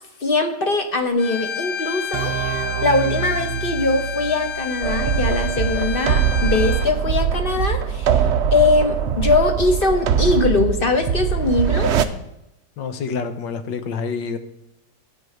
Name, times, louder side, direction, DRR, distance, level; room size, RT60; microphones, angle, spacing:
voice 1, 0.2-8.2 8.5-11.9, left 3 dB, 35° left, 5 dB, 1.2 m, -21 dB
Bowed string instrument, 1.2-6.9, left 8 dB, 60° left, 1.3 m, -30 dB
sound 1, 2.1-5.7, right 10 dB, 80° right, 1.2 m, -29 dB
sound 2, 4.8-12.1, right 8 dB, 65° right, 0.7 m, -21 dB
voice 2, 12.8-14.4, left 5 dB, 80° left, 9 dB, 1.7 m, -27 dB
13.0 x 5.5 x 7.9 m, 0.88 s
omnidirectional pair, 1.9 m